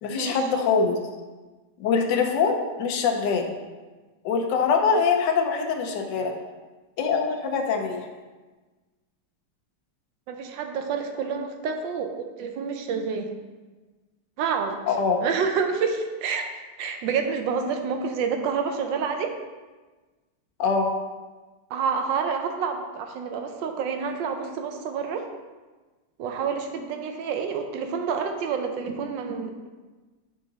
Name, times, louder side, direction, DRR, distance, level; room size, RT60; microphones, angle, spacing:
voice 1, 0.0-1.0 1.8-3.5 4.2-6.3 7.0-8.1 14.9-15.2 20.6-20.9, left 5 dB, 75° left, 2 dB, 1.4 m, -23 dB
voice 2, 10.3-13.3 14.4-14.8 15.2-16.5 16.8-19.3 21.7-25.3 26.2-29.7, right 6 dB, 90° right, 5 dB, 1.4 m, -28 dB
9.0 x 3.7 x 4.0 m, 1.3 s
omnidirectional pair, 2.0 m